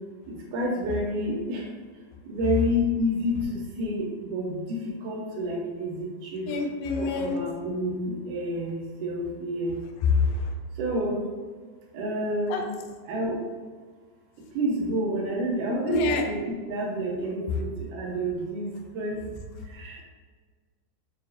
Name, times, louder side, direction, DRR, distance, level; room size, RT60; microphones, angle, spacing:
voice 1, 0.5-1.7 2.3-6.4 7.0-9.8 10.8-11.2 11.9-12.6 13.1-13.4 14.6-19.2 19.7-20.0, equal, 75° right, -2 dB, 2.1 m, -29 dB
voice 2, 6.5-7.4 10.2-10.3 12.5-12.6 15.9-16.2, left 3 dB, 80° left, 2 dB, 1.6 m, -26 dB
6.4 x 2.4 x 2.6 m, 1.5 s
omnidirectional pair, 3.8 m